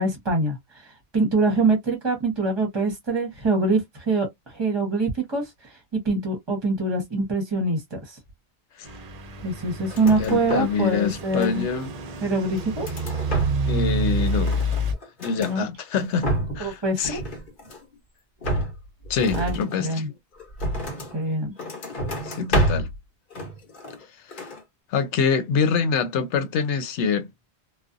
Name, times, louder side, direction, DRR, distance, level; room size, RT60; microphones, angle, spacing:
voice 1, 0.0-5.5 6.0-8.2 9.4-11.6 12.2-12.9 15.4-15.6 16.6-17.2 19.3-20.1 21.1-21.5, right 2 dB, 25° right, 0.8 m, -24 dB
Truck / Idling, 8.8-14.9, right 1 dB, 55° right, 0.4 m, -28 dB
sound 1, 9.8-10.8 11.1-11.9 12.4-13.8 14.1-15.6 16.0-16.7 17.0-17.9 18.4-21.2 21.6-23.0 23.3-24.1 24.3-24.6, right 1 dB, 50° left, 1.1 m, -29 dB
voice 2, 10.2-11.9 13.7-14.7 15.2-17.2 19.1-20.0 22.2-22.9 24.3-24.5 24.9-27.3, left 6 dB, 90° left, 0.9 m, -25 dB
2.4 x 2.2 x 2.5 m
omnidirectional pair, 1.1 m